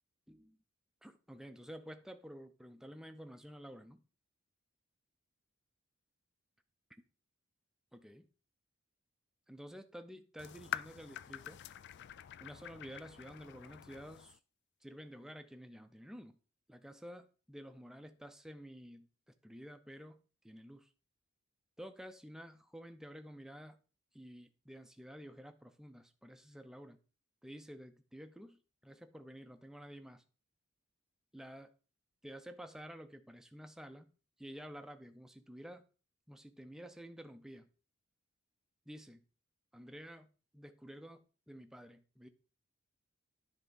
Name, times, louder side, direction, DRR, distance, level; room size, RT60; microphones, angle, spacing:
voice 1, 0.3-0.6 1.0-4.0 7.9-8.3 9.5-11.6 12.4-14.4 14.8-16.4 16.7-19.1 19.4-20.9 21.8-23.8 24.1-27.0 27.4-30.2 31.3-31.7 32.2-34.1 34.4-35.8 36.3-37.7 38.9-39.2 39.7-42.3, equal, ahead, 0.6 m, -51 dB
sound 1, 10.4-14.4, left 10 dB, 55° left, 0.3 m, -46 dB
10.5 x 3.6 x 5.3 m
head